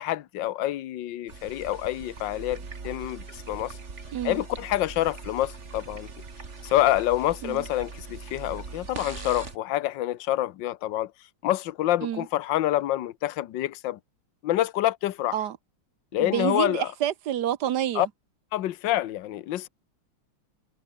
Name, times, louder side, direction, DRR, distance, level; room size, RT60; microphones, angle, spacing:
voice 1, 0.0-3.8 4.2-6.1 6.6-11.1 11.4-14.0 14.4-15.4 16.1-16.9 17.9-18.1 18.5-19.7, left 14 dB, 70° left, 1.5 m, -27 dB
sound 1, 1.3-9.6, right 4 dB, 35° right, 2.4 m, -41 dB
voice 2, 4.1-4.4 7.4-7.7 12.0-12.3 15.3-15.6 16.2-18.1, right 11 dB, 60° right, 1.4 m, -28 dB
omnidirectional pair, 2.1 m